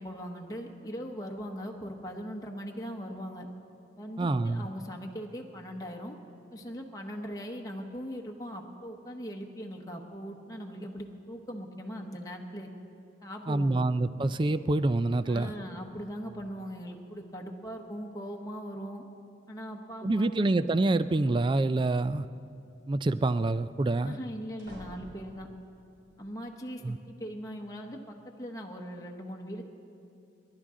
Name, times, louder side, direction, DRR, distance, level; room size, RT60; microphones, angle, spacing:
voice 1, 0.0-3.5 4.0-6.1 6.5-12.7 13.2-13.9 15.2-19.0 19.5-20.5 24.0-25.5 26.2-29.7, equal, 20° left, 0 dB, 1.0 m, -40 dB
voice 2, 4.2-4.7 13.5-15.5 20.0-22.3 22.9-24.2 26.8-27.0, right 2 dB, 25° right, 13 dB, 0.3 m, -26 dB
sound 1, 24.6-25.7, equal, 75° right, 3.6 m, -50 dB
29.0 x 11.5 x 3.7 m, 2.7 s
head